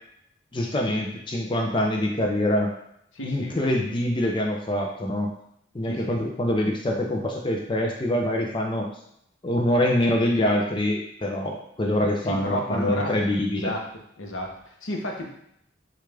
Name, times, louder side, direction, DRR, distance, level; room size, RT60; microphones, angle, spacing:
voice 1, 0.5-2.7 3.2-5.3 5.7-8.9 9.4-13.7, left 1 dB, 25° left, 1 dB, 0.5 m, -25 dB
voice 2, 3.1-3.5 5.9-6.2 12.2-13.2 13.5-13.9 14.2-15.3, left 1 dB, 85° left, 1 dB, 0.9 m, -31 dB
6.5 x 2.4 x 3.3 m, 0.73 s
head